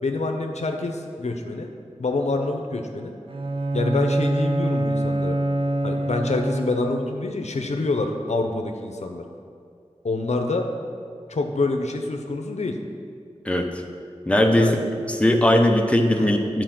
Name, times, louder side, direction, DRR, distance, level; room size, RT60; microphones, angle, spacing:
voice 1, 0.0-1.7 2.0-3.1 3.7-5.4 5.8-9.2 10.0-10.7 11.3-12.8 14.5-14.8 16.2-16.3, left 3 dB, 70° left, 4 dB, 0.7 m, -26 dB
Bowed string instrument, 3.3-7.0, right 2 dB, 50° right, 0.7 m, -25 dB
voice 2, 14.3-14.8 15.1-16.6, left 1 dB, 10° left, 3 dB, 0.8 m, -19 dB
9.1 x 4.6 x 6.0 m, 2.3 s
wide cardioid pair, 50°, 12 cm